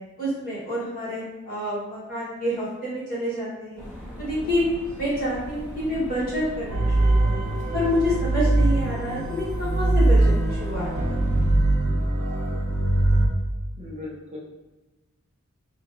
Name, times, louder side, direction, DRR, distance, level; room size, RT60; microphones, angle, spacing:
voice 1, 0.2-3.8 4.2-4.6 5.0-7.4 7.7-11.3, left 1 dB, 45° left, -8 dB, 1.5 m, -28 dB
sound 1, 3.8-11.5, equal, 5° left, 1.4 m, -38 dB
sound 2, 6.7-13.3, right 2 dB, 80° right, 0.7 m, -22 dB
voice 2, 13.8-14.4, left 2 dB, 30° right, -5 dB, 0.8 m, -37 dB
2.9 x 2.5 x 3.8 m, 1.1 s
head